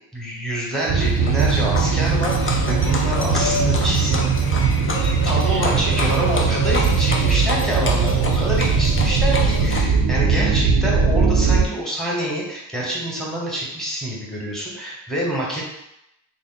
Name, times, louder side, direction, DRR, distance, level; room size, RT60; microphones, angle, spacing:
voice 1, 0.1-4.2 5.2-15.7, right 1 dB, ahead, -5 dB, 1.0 m, -26 dB
Livestock farm animals working animals, 0.7-9.8, left 2 dB, 30° left, 0.4 m, -29 dB
sound 1, 0.9-11.7, right 5 dB, 55° right, 0.5 m, -20 dB
3.4 x 2.0 x 3.8 m, 0.85 s
wide cardioid pair, 85°, 49 cm